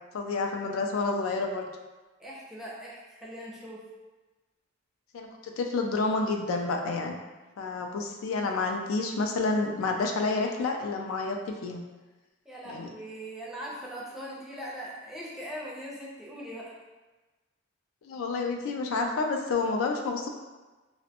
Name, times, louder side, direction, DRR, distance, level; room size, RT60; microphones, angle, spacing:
voice 1, 0.1-1.7 5.1-7.2 7.6-11.8 12.7-12.9 18.0-20.3, left 3 dB, 85° left, 3 dB, 0.3 m, -29 dB
voice 2, 2.2-3.8 12.4-16.7, equal, ahead, -5 dB, 0.4 m, -40 dB
2.5 x 2.1 x 2.7 m, 1.2 s
head